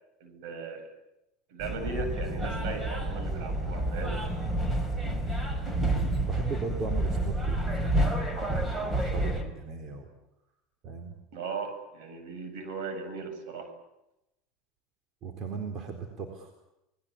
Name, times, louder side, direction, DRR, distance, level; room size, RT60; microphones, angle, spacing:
voice 1, 0.2-0.9 1.5-4.2 11.3-13.7, right 4 dB, 70° right, 8 dB, 7.1 m, -37 dB
sound 1, 1.6-9.4, right 1 dB, 15° right, 5.3 m, -29 dB
voice 2, 5.9-10.1 10.8-11.1 15.2-16.5, right 4 dB, 45° right, 4 dB, 4.3 m, -38 dB
27.5 x 21.0 x 8.8 m, 0.90 s
supercardioid pair, 115°, 0 cm